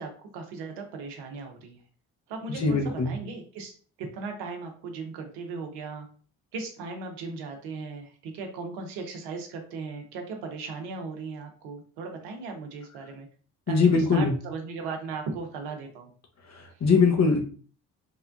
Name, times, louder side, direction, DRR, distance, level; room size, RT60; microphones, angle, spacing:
voice 1, 0.0-1.8 2.3-3.7 4.0-6.1 6.5-13.3 13.7-16.1, right 4 dB, 75° right, 3 dB, 0.8 m, -37 dB
voice 2, 2.5-3.1 13.7-14.3 16.4-17.4, left 4 dB, 40° left, 3 dB, 0.9 m, -22 dB
3.5 x 2.2 x 2.5 m, 0.41 s
hypercardioid pair, 55°, 40 cm